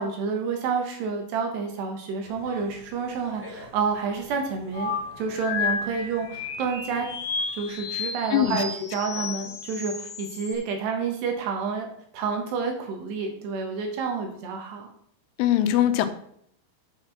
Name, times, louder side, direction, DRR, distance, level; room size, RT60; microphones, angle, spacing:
voice 1, 0.0-7.1 7.5-11.9 12.1-14.9, right 5 dB, 70° right, 3 dB, 3.2 m, -29 dB
sound 1, 2.2-9.1, equal, 5° right, 1.7 m, -49 dB
sound 2, 4.7-10.5, left 4 dB, 55° left, 2.2 m, -32 dB
voice 2, 8.3-8.6 15.4-16.1, left 11 dB, 85° left, 9 dB, 3.2 m, -21 dB
9.2 x 5.8 x 5.9 m, 0.68 s
omnidirectional pair, 5.7 m